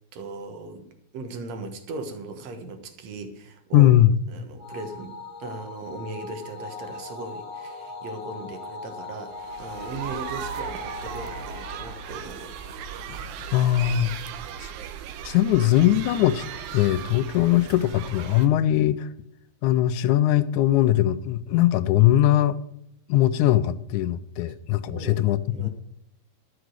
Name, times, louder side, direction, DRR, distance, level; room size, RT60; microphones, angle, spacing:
voice 1, 0.1-0.8 1.1-3.9 4.3-12.6 24.9-25.2 25.5-25.7, right 3 dB, 65° right, 2.4 m, -38 dB
voice 2, 3.7-4.1 13.1-13.2 13.5-14.2 14.6-14.7 15.2-16.4 16.7-19.1 19.6-22.6 23.1-25.7, left 13 dB, 85° left, 2.1 m, -20 dB
sound 1, 4.6-13.2, left 3 dB, 10° right, 2.4 m, -40 dB
sound 2, 9.4-18.5, right 8 dB, 85° right, 2.2 m, -37 dB
13.0 x 6.0 x 6.4 m
omnidirectional pair, 3.4 m